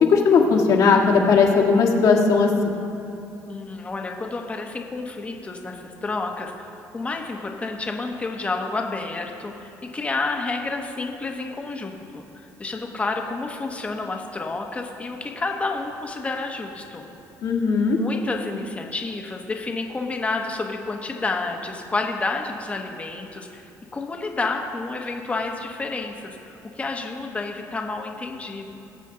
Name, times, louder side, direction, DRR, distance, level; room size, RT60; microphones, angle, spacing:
voice 1, 0.0-2.5 17.4-18.0, left 5 dB, 65° left, -1 dB, 1.7 m, -17 dB
voice 2, 3.5-12.3 12.6-17.1 17.9-23.6 23.9-28.7, left 3 dB, 20° left, 2 dB, 1.0 m, -30 dB
19.0 x 7.5 x 3.8 m, 3.0 s
cardioid pair, 125°, 6 cm